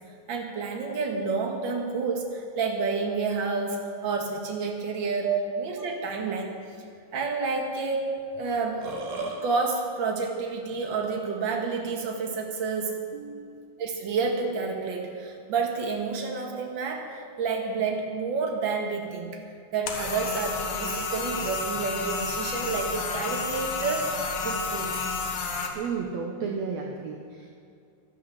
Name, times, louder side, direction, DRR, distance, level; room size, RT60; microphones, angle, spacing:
voice 1, 0.3-5.3 5.6-6.5 7.1-8.1 8.3-8.8 9.4-13.0 13.8-19.3 19.7-25.1, right 4 dB, 40° right, 1 dB, 2.1 m, -29 dB
Burping eructation, 8.2-8.3 8.6-9.4, right 3 dB, 85° right, 3.7 m, -34 dB
voice 2, 13.1-13.7 25.8-27.5, right 6 dB, 65° right, 2 dB, 2.0 m, -32 dB
sound 1, 19.9-25.7, left 4 dB, 70° left, 2.9 m, -31 dB
12.5 x 12.5 x 8.0 m, 2.4 s
omnidirectional pair, 3.9 m